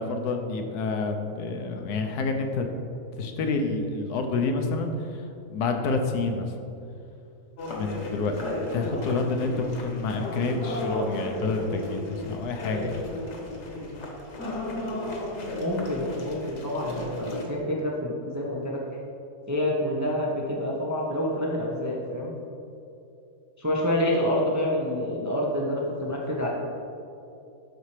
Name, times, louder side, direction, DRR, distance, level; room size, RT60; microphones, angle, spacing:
voice 1, 0.0-2.7 3.1-6.5 7.8-13.0, left 3 dB, 80° left, 4 dB, 1.2 m, -28 dB
sound 1, 7.6-17.4, left 1 dB, 50° left, 1.2 m, -34 dB
voice 2, 15.6-18.8 19.5-22.3 23.6-26.5, left 1 dB, 30° right, -3 dB, 0.3 m, -27 dB
11.5 x 4.2 x 3.2 m, 2.7 s
omnidirectional pair, 1.7 m